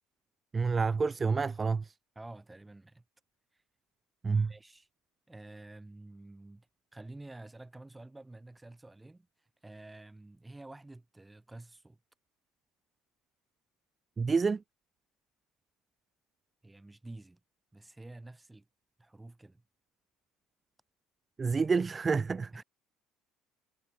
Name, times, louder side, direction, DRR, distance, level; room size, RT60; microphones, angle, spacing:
voice 1, 0.5-1.9 4.2-4.5 14.2-14.6 21.4-22.6, right 4 dB, 25° right, 0.6 m, -28 dB
voice 2, 2.2-3.0 3.5-3.6 4.2-4.9 5.3-6.7 6.9-9.3 9.6-12.0 16.6-17.4 17.7-18.7 19.0-19.6 22.5-22.6, right 2 dB, 10° right, 5.7 m, -49 dB
supercardioid pair, 80°, 0 cm